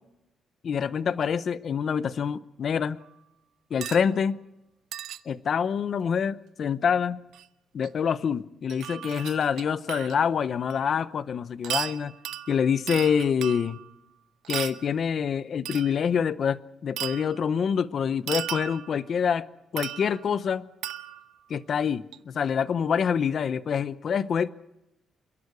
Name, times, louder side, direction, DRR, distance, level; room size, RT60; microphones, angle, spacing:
voice 1, 0.6-3.0 3.7-4.4 5.3-7.2 7.7-12.1 12.5-13.8 14.5-19.5 19.7-20.7 21.5-24.5, left 7 dB, 45° left, 0.7 m, -26 dB
sound 1, 3.8-4.1 4.9-5.2 7.3-7.4 7.8-7.9 8.7-10.2 10.7-10.8 11.6-13.9 14.4-14.9 15.6-16.0 17.0-17.4 18.3-19.1 19.8-20.4 20.8-21.4 22.1-22.2, right 11 dB, 80° right, 1.0 m, -35 dB
28.5 x 11.5 x 9.7 m
cardioid pair, 140°, 0 cm